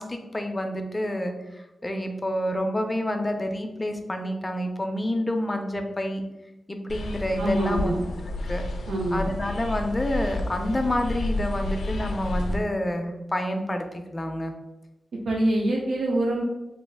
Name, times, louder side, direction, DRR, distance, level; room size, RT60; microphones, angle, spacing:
voice 1, 0.0-6.2 6.7-8.0 8.4-8.6 9.1-14.5, left 1 dB, 20° left, 5 dB, 0.4 m, -28 dB
sound 1, 6.9-12.6, left 1 dB, 90° left, 0.3 m, -31 dB
voice 2, 7.4-8.0 8.9-9.3 15.3-16.4, right 1 dB, 75° right, -2 dB, 0.4 m, -25 dB
3.1 x 2.3 x 3.4 m, 1.0 s
wide cardioid pair, 125°, 0 cm